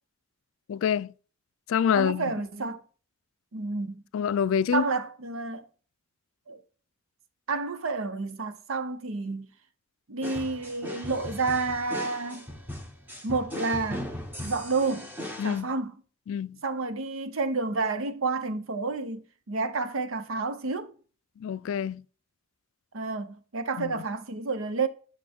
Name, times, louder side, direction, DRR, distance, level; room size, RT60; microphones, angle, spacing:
voice 1, 0.7-1.1 1.7-2.3 4.1-4.9 15.4-15.7 16.3-16.6 21.4-22.0 23.8-24.0, left 7 dB, 80° left, 0.3 m, -27 dB
voice 2, 1.9-2.8 3.5-4.0 4.7-5.7 6.5-6.6 7.5-9.5 10.1-12.5 13.2-14.1 14.4-15.1 15.4-15.9 16.6-20.9 22.9-24.9, right 3 dB, 90° right, 0.8 m, -30 dB
sound 1, 10.2-15.6, left 1 dB, 10° right, 1.0 m, -38 dB
8.5 x 5.6 x 3.5 m
head